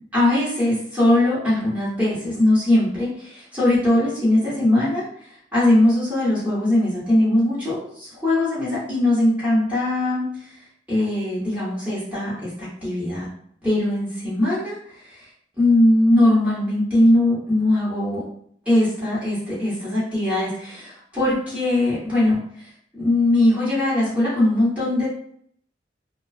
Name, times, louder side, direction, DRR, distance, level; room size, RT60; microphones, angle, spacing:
voice 1, 0.0-5.0 5.5-10.6 10.9-13.3 13.6-15.3 15.6-18.2 18.7-22.7 23.0-25.1, left 1 dB, 10° right, -10 dB, 1.0 m, -20 dB
2.3 x 2.2 x 2.4 m, 0.64 s
head